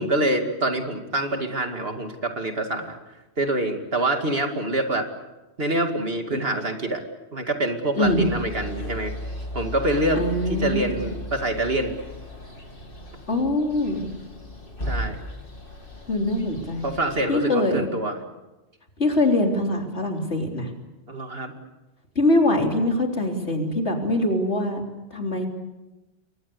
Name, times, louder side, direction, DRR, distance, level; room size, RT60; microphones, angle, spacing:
voice 1, 0.0-3.0 3.4-5.1 5.6-7.0 7.3-9.1 9.5-10.2 10.5-11.9 14.9-15.2 16.8-18.1 21.1-21.5, right 1 dB, 55° right, 5 dB, 2.7 m, -25 dB
voice 2, 7.9-8.3 10.1-11.0 13.3-14.1 16.1-16.8 17.3-17.9 19.0-20.7 22.2-24.8 25.1-25.5, left 1 dB, 70° left, 2 dB, 3.9 m, -23 dB
sound 1, 8.0-17.3, equal, 50° left, 3.5 m, -36 dB
28.5 x 23.0 x 7.0 m, 1.0 s
omnidirectional pair, 1.2 m